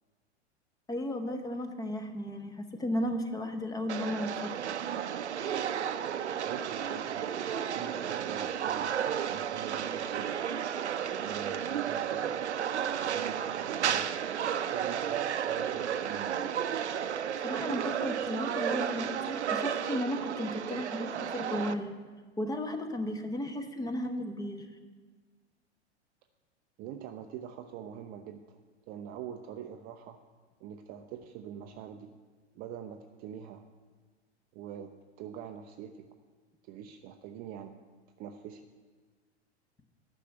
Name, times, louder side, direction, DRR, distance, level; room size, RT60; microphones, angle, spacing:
voice 1, 0.9-4.6 17.4-21.9 22.4-24.7, left 1 dB, 10° left, 8 dB, 0.7 m, -34 dB
sound 1, 3.9-21.7, right 8 dB, 80° right, 0.5 m, -33 dB
voice 2, 6.4-7.2 7.7-8.9 9.3-10.4 11.2-12.5 13.1-14.1 14.7-16.6 26.8-28.6 28.9-30.2 30.6-32.1 32.5-33.6 34.5-36.1 36.6-37.8 38.2-38.6, right 9 dB, 25° right, 6 dB, 0.4 m, -44 dB
9.9 x 6.1 x 7.7 m, 1.4 s
figure-of-eight pair, 95°, 34 cm